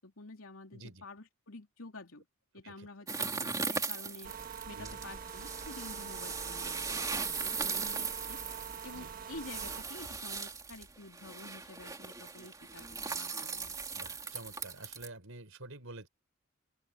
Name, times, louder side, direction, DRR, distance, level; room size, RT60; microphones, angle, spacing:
voice 1, 0.0-2.2 2.5-4.3 4.7-8.4 8.8-13.8, left 2 dB, 75° left, 3.1 m, -49 dB
voice 2, 0.7-1.0 2.6-2.9 4.7-5.0 8.9-9.1 13.9-16.1, right 2 dB, 70° right, 4.5 m, -49 dB
sound 1, 3.1-15.1, right 5 dB, 15° right, 2.9 m, -38 dB
sound 2, 4.2-9.8, right 6 dB, 40° right, 1.4 m, -45 dB
open air
head